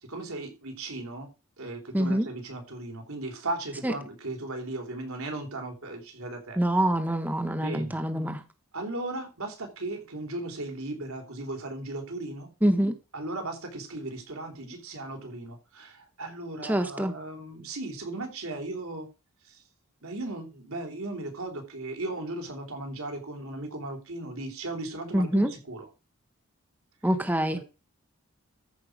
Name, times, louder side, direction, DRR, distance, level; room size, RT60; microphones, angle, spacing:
voice 1, 0.0-1.3 1.6-6.6 7.6-8.0 8.7-12.5 13.1-19.1 19.4-19.6 20.0-25.9 27.5-27.6, right 2 dB, 85° right, 3.7 m, -36 dB
voice 2, 1.9-2.3 3.8-3.9 6.6-8.4 12.6-13.0 16.6-17.1 25.1-25.5 27.0-27.6, right 1 dB, 10° right, 0.8 m, -25 dB
13.5 x 4.9 x 6.2 m
head